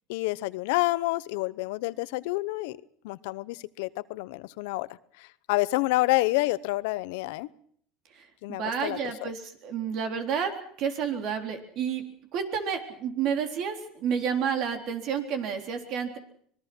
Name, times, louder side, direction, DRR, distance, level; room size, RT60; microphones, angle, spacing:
voice 1, 0.1-2.8 3.0-7.5 8.4-9.3, left 20 dB, 80° left, 17 dB, 0.8 m, -28 dB
voice 2, 8.1-10.5 10.8-12.0 12.3-16.2, right 7 dB, 60° right, 6 dB, 3.8 m, -30 dB
25.0 x 20.5 x 6.2 m, 0.62 s
supercardioid pair, 110°, 0 cm